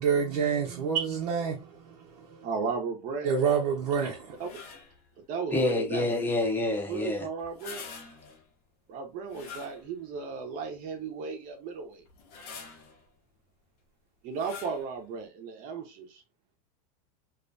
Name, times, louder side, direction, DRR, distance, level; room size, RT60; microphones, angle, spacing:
voice 1, 0.0-2.5 3.2-4.4, right 6 dB, 80° right, 0.7 m, -28 dB
voice 2, 2.4-3.3 4.4-4.5 5.3-6.1 6.9-7.8 8.9-12.0 14.2-16.2, right 5 dB, 40° right, 0.7 m, -35 dB
sound 1, 4.3-5.0 7.4-8.5 9.3-10.2 10.7-10.8 12.1-13.0 14.3-14.9, left 5 dB, 65° left, 0.8 m, -45 dB
voice 3, 5.5-7.3, left 2 dB, 10° left, 0.6 m, -27 dB
2.4 x 2.1 x 2.4 m
hypercardioid pair, 115°, 21 cm